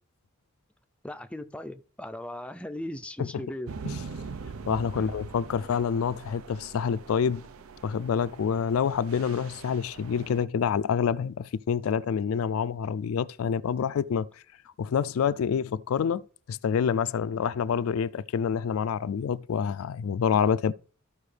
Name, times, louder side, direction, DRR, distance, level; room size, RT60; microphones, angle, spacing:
voice 1, 1.0-3.8 5.0-5.1, left 1 dB, 5° left, 0.4 m, -38 dB
sound 1, 3.7-10.4, right 4 dB, 85° right, 0.6 m, -42 dB
voice 2, 4.7-7.5 7.8-14.3 14.8-16.2 16.5-20.7, left 7 dB, 80° left, 0.3 m, -27 dB
13.5 x 4.8 x 3.3 m
head